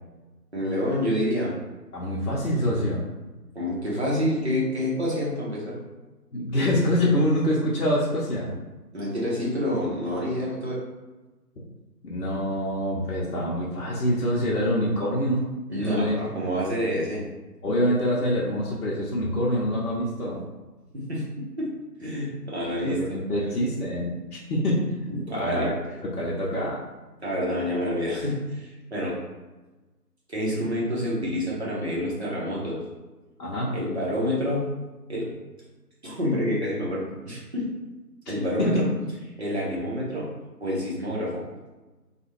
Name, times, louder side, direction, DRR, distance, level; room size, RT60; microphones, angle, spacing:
voice 1, 0.5-1.5 3.5-5.7 8.9-10.8 15.7-17.2 20.9-21.7 22.0-23.0 25.3-25.7 27.2-29.2 30.3-32.8 33.7-34.6 35.1-35.3 36.0-37.6 38.3-38.9 39.4-40.3 40.6-41.4, equal, 40° right, -6 dB, 0.8 m, -28 dB
voice 2, 1.9-3.0 6.3-8.5 12.0-15.4 15.8-16.2 17.6-20.4 22.8-25.7 26.1-26.8 33.4-33.7 38.6-38.9, equal, 65° left, -6 dB, 0.7 m, -25 dB
2.4 x 2.4 x 3.0 m, 1.2 s
figure-of-eight pair, 165°, 49 cm